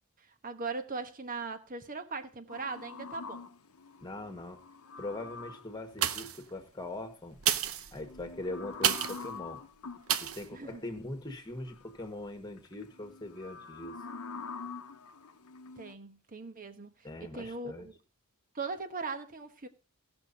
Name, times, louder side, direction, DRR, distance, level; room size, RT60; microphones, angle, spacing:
voice 1, 0.4-3.4 10.5-10.9 15.8-16.9 17.2-17.9 18.5-19.7, right 4 dB, 40° right, 1.1 m, -39 dB
sound 1, 2.5-5.8 7.9-10.1 11.5-12.1 12.6-15.9, left 4 dB, 85° left, 0.9 m, -45 dB
voice 2, 4.0-4.6 5.0-7.4 7.9-9.6 10.2-14.0 17.0-17.9, left 2 dB, 20° left, 1.5 m, -41 dB
sound 2, 5.9-6.5 7.3-9.3 10.1-10.5 11.0-11.1, right 9 dB, 70° right, 0.8 m, -31 dB
17.5 x 6.3 x 4.0 m
head